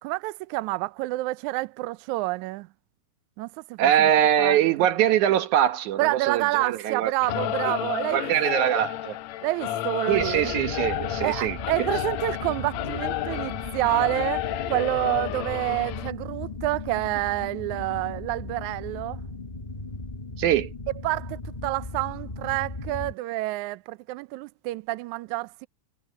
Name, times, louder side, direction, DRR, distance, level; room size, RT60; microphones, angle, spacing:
voice 1, 0.0-2.7 3.4-4.1 4.4-4.9 6.0-8.7 9.4-10.5 11.2-19.2 21.0-25.7, right 19 dB, 90° right, 1.7 m, -28 dB
voice 2, 3.8-7.1 7.6-7.7 8.1-9.2 10.1-11.6 20.4-20.7, right 11 dB, 65° right, 2.2 m, -23 dB
Singing / Musical instrument, 7.2-16.1, left 14 dB, 85° left, 1.5 m, -31 dB
sound 1, 10.1-23.1, left 2 dB, 30° left, 0.7 m, -37 dB
omnidirectional pair, 4.2 m